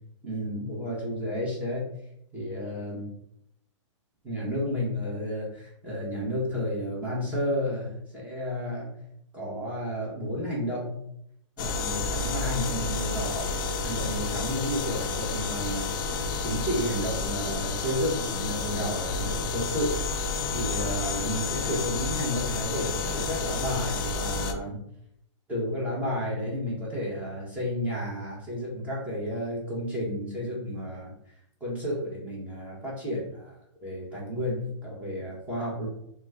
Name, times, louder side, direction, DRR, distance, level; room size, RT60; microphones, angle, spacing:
voice 1, 0.2-1.9 2.3-3.1 4.2-9.0 9.3-11.0 11.6-13.5 13.8-16.0 16.4-20.0 20.5-24.8 25.5-31.1 31.6-35.9, equal, 10° right, -6 dB, 1.0 m, -32 dB
sound 1, 11.6-24.5, left 4 dB, 40° left, 0.4 m, -30 dB
3.0 x 2.2 x 3.5 m, 0.74 s
hypercardioid pair, 155°, 16 cm